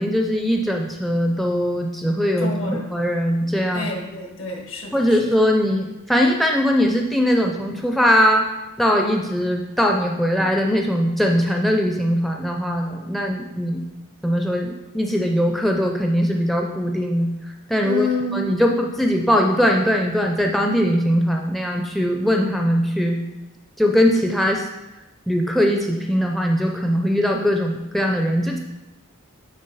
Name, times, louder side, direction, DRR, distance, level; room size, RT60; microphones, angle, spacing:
voice 1, 0.0-3.9 4.9-8.5 8.8-13.9 14.2-17.3 17.7-18.1 18.3-23.2 23.8-24.7 25.3-28.6, equal, ahead, 2 dB, 0.4 m, -20 dB
voice 2, 2.4-3.0 3.7-5.2 17.8-18.6, left 2 dB, 70° left, 1 dB, 1.4 m, -28 dB
9.3 x 3.7 x 4.0 m, 1.0 s
head